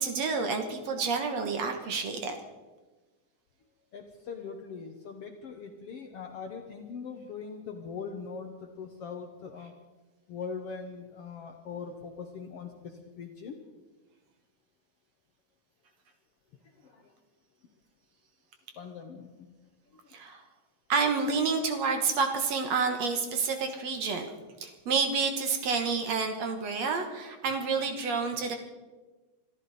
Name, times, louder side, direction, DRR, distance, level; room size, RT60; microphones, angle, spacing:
voice 1, 0.0-2.3 20.1-20.4 20.9-24.3 24.6-28.6, right 4 dB, 60° right, 6 dB, 2.3 m, -29 dB
voice 2, 3.9-9.7 10.3-13.6 16.8-17.1 18.7-19.5 19.9-20.0, left 5 dB, 65° left, 4 dB, 1.6 m, -41 dB
25.0 x 13.5 x 4.2 m, 1.2 s
omnidirectional pair, 3.8 m